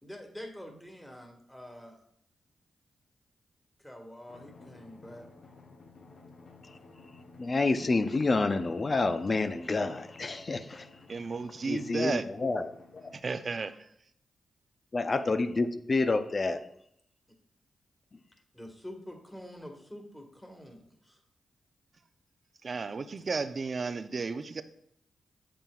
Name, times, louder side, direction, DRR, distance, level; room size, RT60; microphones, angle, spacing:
voice 1, 0.0-2.0 3.8-5.3 18.5-21.2, left 1 dB, 10° left, 2 dB, 1.8 m, -46 dB
Drum, 4.3-13.2, left 3 dB, 65° left, 0.9 m, -54 dB
voice 2, 7.1-11.0 11.6-13.1 14.9-16.7 18.1-18.2, left 3 dB, 45° left, 10 dB, 0.6 m, -29 dB
voice 3, 11.1-12.2 13.1-13.9 22.6-24.6, right 4 dB, 50° right, 11 dB, 0.5 m, -33 dB
8.5 x 7.5 x 2.4 m, 0.71 s
cardioid pair, 50°, 0 cm